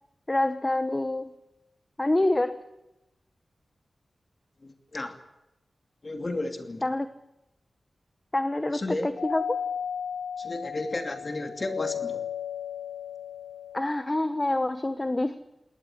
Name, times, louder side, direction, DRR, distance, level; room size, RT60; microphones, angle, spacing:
voice 1, 0.3-1.4 2.0-2.6 6.8-7.1 8.3-9.6 13.7-15.4, left 1 dB, 20° left, 10 dB, 1.0 m, -26 dB
voice 2, 4.6-5.2 6.0-6.9 8.7-9.1 10.4-12.3, left 2 dB, 35° left, 6 dB, 2.8 m, -33 dB
Doorbell, 9.2-14.0, left 8 dB, 75° left, 1.1 m, -34 dB
21.0 x 18.5 x 10.0 m, 0.93 s
wide cardioid pair, 130°, 0 cm